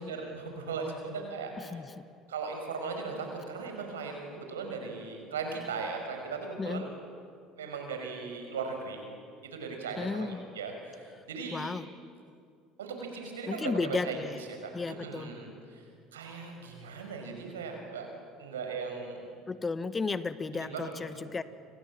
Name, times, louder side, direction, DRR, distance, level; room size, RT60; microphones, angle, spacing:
voice 1, 0.0-1.5 2.3-6.9 7.6-9.0 9.4-11.8 12.8-14.2 14.9-15.8 16.1-18.1 18.4-19.2 20.5-20.9 21.2-21.3, right 4 dB, 85° right, 4 dB, 5.6 m, -38 dB
voice 2, 1.6-2.0 6.6-6.9 10.0-10.5 11.5-11.9 13.5-14.4 14.7-15.3 19.5-21.4, left 4 dB, 25° left, 13 dB, 1.4 m, -34 dB
30.0 x 25.5 x 7.6 m, 2.3 s
hypercardioid pair, 65°, 0 cm